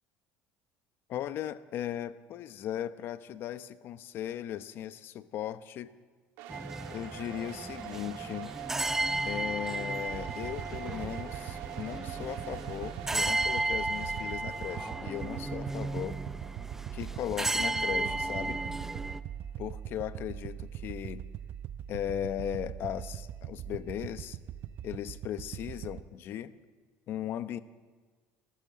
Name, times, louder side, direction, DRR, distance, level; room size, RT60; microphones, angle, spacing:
voice 1, 1.1-5.9 6.9-8.5 9.2-16.2 16.9-18.6 19.6-21.2 21.9-24.4 24.8-26.5 27.1-27.6, left 11 dB, 45° left, 13 dB, 0.9 m, -37 dB
sound 1, 6.4-19.2, right 10 dB, 80° right, 2.0 m, -46 dB
sound 2, 6.5-19.2, right 2 dB, 10° right, 0.6 m, -34 dB
sound 3, 10.1-26.0, right 10 dB, 45° right, 0.8 m, -42 dB
27.0 x 14.5 x 7.5 m, 1.5 s
cardioid pair, 145°, 5 cm